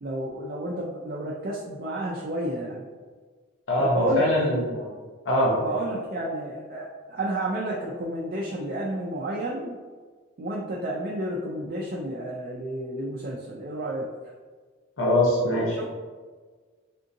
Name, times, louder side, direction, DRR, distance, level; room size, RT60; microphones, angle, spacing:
voice 1, 0.0-2.8 3.8-4.3 5.5-9.8 10.4-14.1 15.5-15.9, right 1 dB, 45° right, -4 dB, 0.4 m, -31 dB
voice 2, 3.7-4.9 5.2-5.5 15.0-15.8, left 1 dB, 75° left, -4 dB, 0.7 m, -23 dB
3.6 x 2.6 x 2.5 m, 1.5 s
head